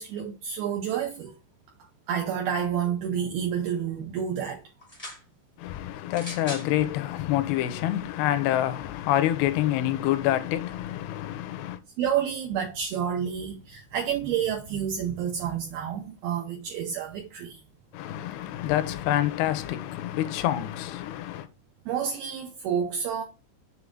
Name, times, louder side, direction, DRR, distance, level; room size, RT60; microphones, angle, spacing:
voice 1, 0.0-1.3 2.1-4.6 12.0-17.6 21.9-23.2, right 8 dB, 80° right, 2.2 m, -29 dB
sound 1, 4.8-5.2 6.1-6.7 7.6-7.7, left 1 dB, 40° left, 0.5 m, -39 dB
voice 2, 5.6-11.8 17.9-21.5, left 13 dB, 80° left, 2.5 m, -27 dB
7.3 x 3.8 x 3.7 m
omnidirectional pair, 5.3 m